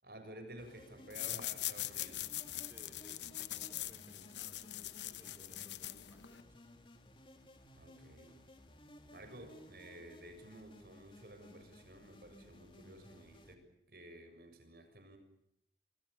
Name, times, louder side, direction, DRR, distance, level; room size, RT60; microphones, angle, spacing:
voice 1, 0.0-2.3 7.7-8.4 9.1-15.2, right 1 dB, 60° right, 7 dB, 7.1 m, -53 dB
sound 1, 0.6-13.5, left 1 dB, 30° left, 2.8 m, -59 dB
sound 2, 1.1-6.4, left 14 dB, 85° left, 0.9 m, -42 dB
voice 2, 2.6-6.5, equal, 15° right, 3 dB, 3.4 m, -63 dB
26.5 x 26.5 x 6.8 m, 0.79 s
head